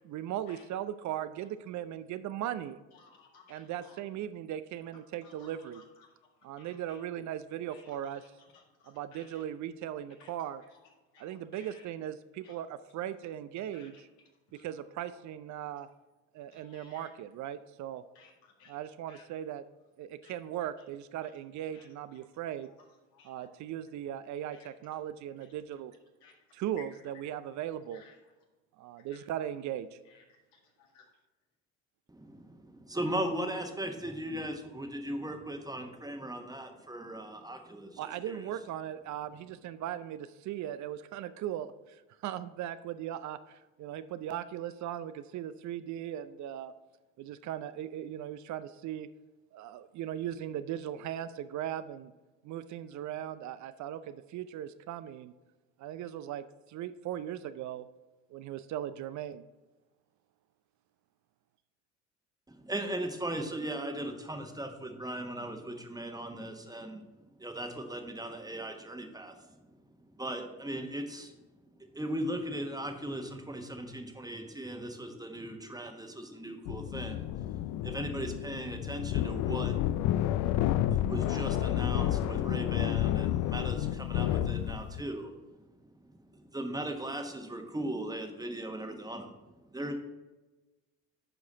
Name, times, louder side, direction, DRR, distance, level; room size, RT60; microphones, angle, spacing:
voice 1, 0.0-2.8 3.5-5.8 6.4-8.2 8.9-10.6 11.2-14.1 14.6-15.9 16.3-18.0 18.7-19.6 20.0-22.7 23.2-25.9 26.5-28.0 28.8-30.0 38.0-46.7 47.2-49.1 49.5-52.1 52.4-55.3 55.8-57.9 58.3-59.4, right 11 dB, 50° right, 12 dB, 0.5 m, -38 dB
voice 2, 3.0-4.0 5.2-5.8 6.6-6.7 7.7-7.8 8.8-9.4 10.2-10.3 11.1-11.2 11.5-11.8 12.4-12.5 13.7-13.9 14.5-14.6 16.5-17.1 18.2-18.7 19.1-19.2 20.2-20.3 21.7-21.8 23.1-23.5 24.5-24.7 26.2-26.3 27.9-28.1 29.1-29.2 30.9-31.0, left 5 dB, 75° left, 0 dB, 2.0 m, -58 dB
voice 3, 32.1-38.5 62.5-67.1 67.4-69.9 70.2-71.3 71.9-86.0 86.3-89.3 89.7-89.9, right 1 dB, 10° right, 4 dB, 1.2 m, -38 dB
sound 1, 76.6-85.0, left 12 dB, 50° left, 0.5 m, -30 dB
11.0 x 4.8 x 3.9 m, 1.1 s
hypercardioid pair, 65°, 39 cm